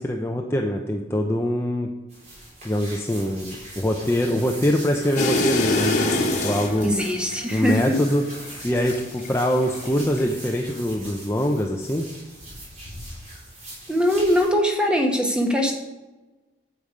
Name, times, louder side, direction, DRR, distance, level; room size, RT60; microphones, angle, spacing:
voice 1, 0.0-1.9 2.6-6.9 7.5-8.2 8.6-12.1, equal, 15° left, 2 dB, 0.6 m, -24 dB
sound 1, 2.1-14.5, right 1 dB, 40° right, 3.8 m, -41 dB
sound 2, 5.2-9.3 9.6-10.2, left 2 dB, 40° left, 1.3 m, -25 dB
voice 2, 6.8-8.0 13.9-15.7, equal, 5° right, 2 dB, 1.1 m, -21 dB
8.6 x 8.0 x 5.1 m, 1.1 s
head